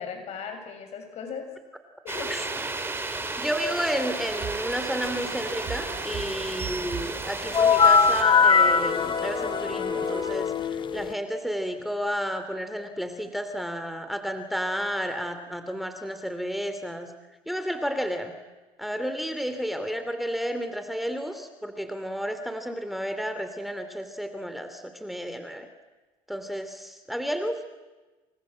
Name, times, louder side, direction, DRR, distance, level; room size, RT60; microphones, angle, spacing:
voice 1, 0.0-1.5 2.0-2.6, left 5 dB, 60° left, 6 dB, 7.2 m, -37 dB
sound 1, 2.1-8.2, right 3 dB, 20° right, 4.7 m, -33 dB
voice 2, 3.4-17.1 17.5-18.3 18.8-25.7 26.3-27.7, equal, ahead, 8 dB, 3.2 m, -32 dB
sound 2, 4.3-10.4, right 7 dB, 50° right, 4.0 m, -39 dB
sound 3, 7.5-11.1, left 6 dB, 40° left, 1.2 m, -21 dB
29.5 x 25.0 x 7.8 m, 1.2 s
supercardioid pair, 85°, 13 cm